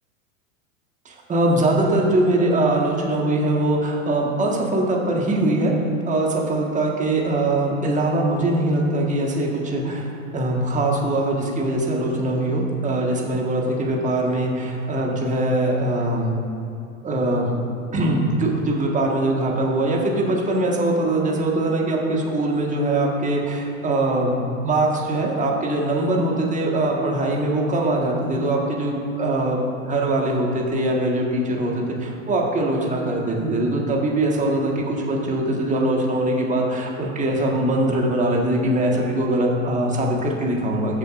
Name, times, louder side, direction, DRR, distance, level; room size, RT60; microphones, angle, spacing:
voice 1, 1.0-5.7 6.1-16.3 17.0-17.5 17.9-24.3 24.6-29.6 29.9-41.0, right 1 dB, 20° right, -1 dB, 1.7 m, -22 dB
16.0 x 6.7 x 2.6 m, 2.7 s
hypercardioid pair, 100°, 41 cm